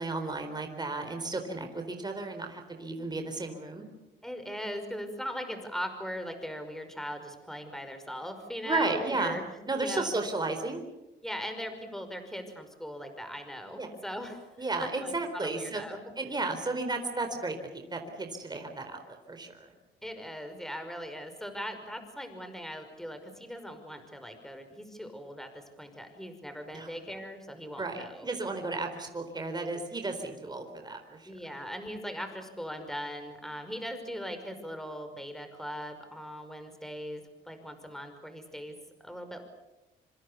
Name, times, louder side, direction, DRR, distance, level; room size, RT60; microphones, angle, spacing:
voice 1, 0.0-3.9 8.6-9.4 9.7-10.8 13.8-13.9 14.6-15.8 16.2-19.7 26.7-26.9 27.8-31.3, right 3 dB, 20° right, 5 dB, 4.2 m, -33 dB
voice 2, 4.2-10.1 11.2-16.3 20.0-28.3 31.2-38.8 39.0-39.4, equal, ahead, 7 dB, 5.5 m, -40 dB
26.0 x 26.0 x 7.0 m, 0.99 s
cardioid pair, 90°, 20 cm